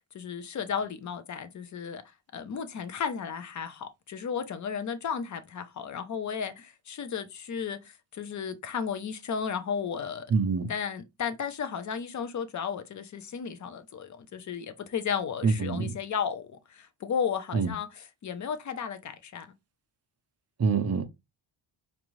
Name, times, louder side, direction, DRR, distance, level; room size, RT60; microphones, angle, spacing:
voice 1, 0.1-2.0 2.3-10.3 10.7-19.5, left 7 dB, 40° left, 0.6 m, -34 dB
voice 2, 10.3-10.7 15.4-15.9 17.5-17.7 20.6-21.0, right 5 dB, 35° right, 0.6 m, -25 dB
4.5 x 2.6 x 3.0 m
wide cardioid pair, 140°, 48 cm